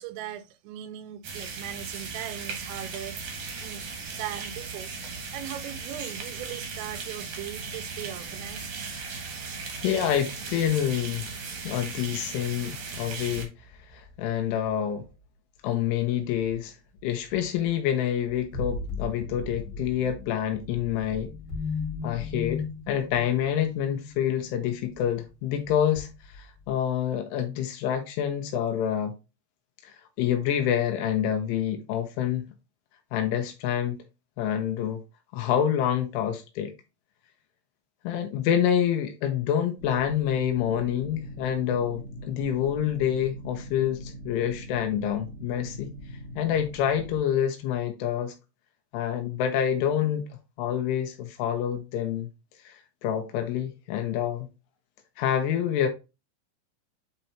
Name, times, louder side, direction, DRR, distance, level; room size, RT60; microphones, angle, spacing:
voice 1, 0.0-3.2 3.6-3.8 4.1-4.9 5.3-8.7, right 12 dB, 85° right, 3.2 m, -39 dB
sound 1, 1.2-13.4, right 4 dB, 60° right, 2.1 m, -37 dB
sound 2, 8.4-8.5 12.9-15.2 16.3-16.6 17.0-17.8 18.2-25.3 25.5-26.7, left 4 dB, 50° left, 3.6 m, -38 dB
voice 2, 9.8-13.5 13.9-15.1 15.6-16.7 17.0-21.3 22.0-29.1 29.8-32.4 33.1-34.0 34.4-35.0 35.3-36.7 38.0-45.9 46.4-48.3 48.9-50.2 50.6-52.3 52.6-52.7 53.0-54.5 55.2-55.9, left 10 dB, 80° left, 3.3 m, -27 dB
sound 3, 39.8-47.2, equal, 35° left, 3.4 m, -41 dB
9.1 x 4.5 x 2.8 m
omnidirectional pair, 5.9 m